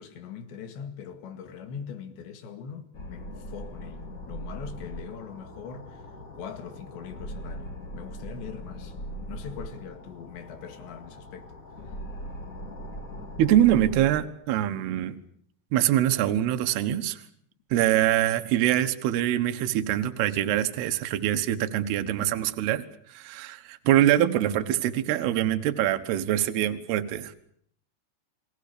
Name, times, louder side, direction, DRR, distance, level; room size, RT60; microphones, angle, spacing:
voice 1, 0.0-6.1 6.4-9.0 9.3-11.5 11.8-12.0, left 7 dB, 75° left, 4.3 m, -42 dB
sound 1, 2.9-14.2, equal, 30° left, 1.7 m, -40 dB
voice 2, 13.4-15.2 15.7-17.2 17.7-22.8 23.1-27.4, right 12 dB, 70° right, 3.1 m, -24 dB
29.5 x 22.0 x 6.8 m
omnidirectional pair, 5.1 m